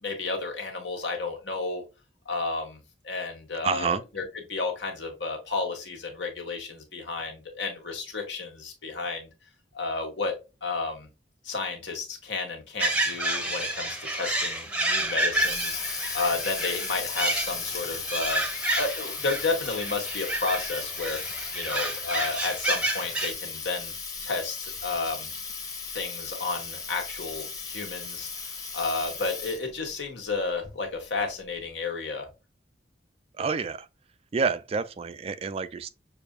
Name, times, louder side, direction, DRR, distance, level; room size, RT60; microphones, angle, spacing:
voice 1, 0.0-1.8 2.2-9.3 9.7-10.3 10.6-11.1 11.4-18.4 18.7-21.2 21.5-23.9 24.2-25.3 25.9-28.3 28.7-32.3, left 3 dB, 80° left, 1.6 m, -32 dB
voice 2, 3.6-4.0 33.4-33.9 34.3-35.9, right 5 dB, 35° right, 0.3 m, -28 dB
sound 1, 12.8-23.3, right 1 dB, 5° right, 0.7 m, -30 dB
Water tap faucet, 15.1-29.8, left 5 dB, 20° left, 0.9 m, -36 dB
6.6 x 2.6 x 2.3 m
head